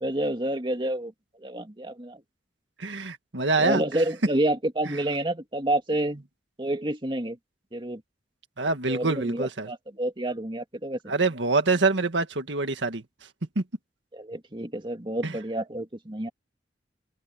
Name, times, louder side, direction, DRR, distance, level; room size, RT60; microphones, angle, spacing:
voice 1, 0.0-1.1 1.4-2.2 3.6-6.2 6.6-7.4 7.7-8.0 8.9-11.1 14.1-16.3, right 1 dB, 25° right, 2.2 m, -29 dB
voice 2, 2.8-3.8 8.6-9.7 11.1-13.0 13.6-13.7 15.2-15.4, right 3 dB, 75° right, 1.8 m, -25 dB
open air
head